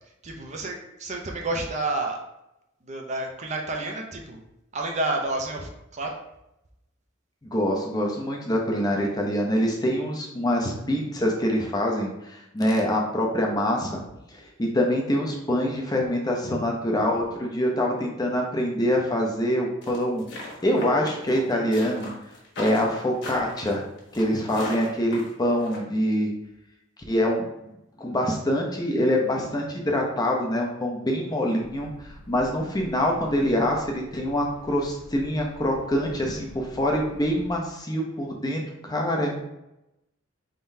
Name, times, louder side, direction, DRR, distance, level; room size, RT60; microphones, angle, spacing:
voice 1, 0.2-2.2 2.9-4.4 4.7-6.1, right 2 dB, 35° right, 1 dB, 0.6 m, -30 dB
voice 2, 7.4-14.0 14.3-22.1 22.6-23.8 24.1-26.3 27.1-27.5 28.0-39.4, equal, 20° left, 0 dB, 0.6 m, -25 dB
sound 1, 19.8-25.8, left 2 dB, 60° left, 1.4 m, -37 dB
sound 2, 31.6-37.5, left 1 dB, 75° left, 0.9 m, -47 dB
4.4 x 3.7 x 2.7 m, 0.88 s
head